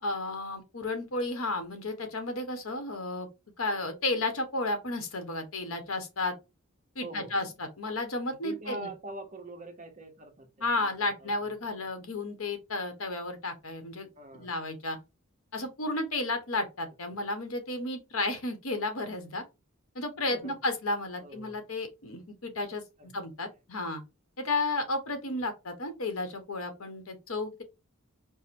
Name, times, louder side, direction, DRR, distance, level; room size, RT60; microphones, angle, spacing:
voice 1, 0.0-3.3 3.6-6.3 6.9-8.9 10.6-14.1 14.3-15.0 15.5-19.4 19.9-24.0 24.4-27.6, left 2 dB, 85° left, 1.1 m, -33 dB
voice 2, 7.0-7.5 8.4-11.5 14.2-14.5 17.1-17.2 20.3-20.6 21.2-21.6 23.0-23.2, right 2 dB, 35° right, 0.9 m, -44 dB
4.8 x 2.2 x 4.2 m
head